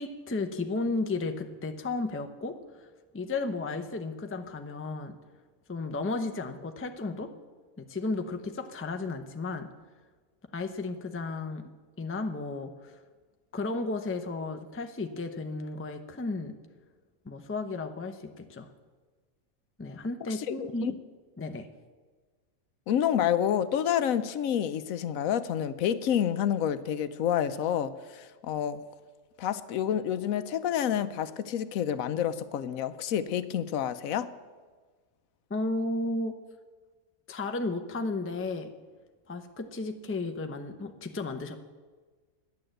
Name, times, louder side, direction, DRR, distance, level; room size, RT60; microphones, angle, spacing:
voice 1, 0.0-2.9 3.1-5.2 5.7-7.3 7.8-9.7 10.5-11.7 12.0-13.0 13.5-16.6 17.2-18.7 19.8-21.0 21.4-21.7 35.5-36.4 37.3-38.7 39.3-41.5, left 3 dB, 15° left, 6 dB, 0.4 m, -33 dB
voice 2, 20.5-20.9 22.9-28.8 29.4-34.3, left 9 dB, 75° left, 13 dB, 1.0 m, -28 dB
11.5 x 9.5 x 7.7 m, 1.4 s
omnidirectional pair, 1.5 m